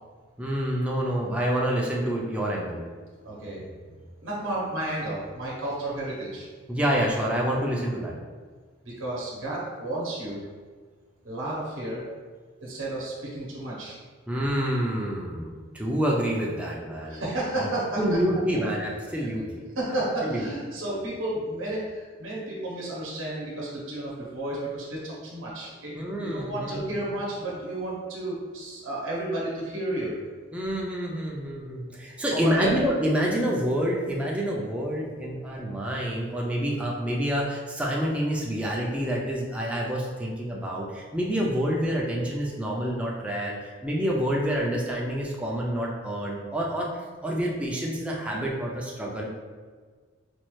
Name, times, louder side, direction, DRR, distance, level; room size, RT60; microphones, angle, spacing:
voice 1, 0.4-2.8 6.7-8.1 14.3-17.2 18.0-19.6 20.2-20.5 25.9-26.9 30.5-49.3, equal, 5° right, -3 dB, 0.4 m, -27 dB
voice 2, 3.2-3.6 4.2-6.5 8.8-10.4 11.2-12.1 12.6-14.0 17.1-18.2 19.8-25.9 26.2-30.2 32.3-32.7, right 1 dB, 75° right, -5 dB, 0.8 m, -32 dB
4.2 x 2.3 x 3.0 m, 1.5 s
head